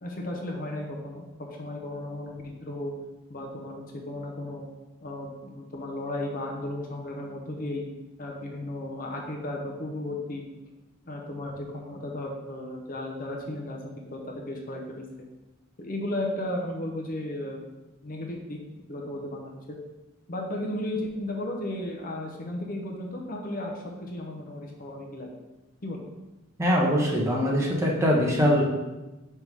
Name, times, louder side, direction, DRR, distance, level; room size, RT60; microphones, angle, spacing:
voice 1, 0.0-1.3 1.6-2.9 3.3-4.6 5.0-7.8 8.2-10.4 11.1-15.0 15.8-17.6 18.0-18.6 18.9-19.8 20.3-25.3 25.8-26.1, left 1 dB, 45° left, 0 dB, 0.8 m, -34 dB
voice 2, 26.6-28.6, equal, 15° right, -3 dB, 1.0 m, -22 dB
5.5 x 3.7 x 4.7 m, 1.1 s
head